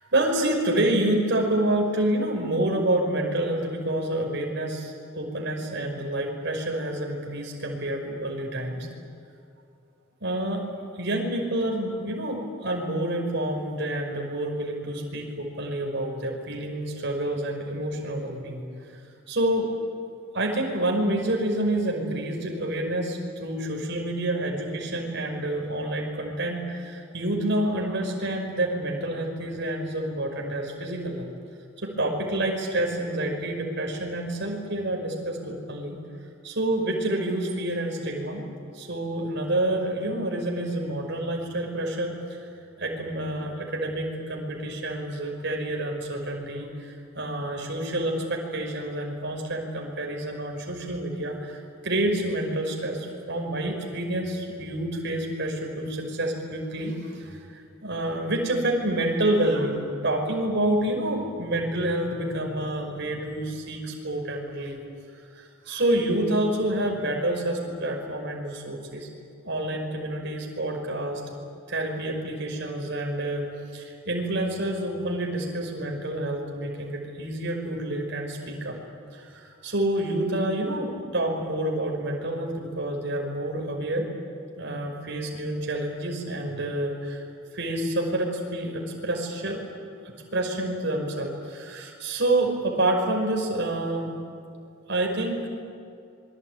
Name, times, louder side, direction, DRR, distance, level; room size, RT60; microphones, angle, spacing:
voice 1, 0.1-8.9 10.2-10.7 11.0-18.6 18.9-19.0 19.3-19.7 20.3-31.3 31.8-36.0 36.4-42.4 42.8-64.8 65.3-69.1 69.4-71.2 71.7-73.5 73.7-78.7 79.1-84.1 84.6-87.2 87.5-89.6 90.0-94.1 94.9-95.5, right 1 dB, 60° right, 1 dB, 5.4 m, -28 dB
27.0 x 23.0 x 9.3 m, 2.5 s
head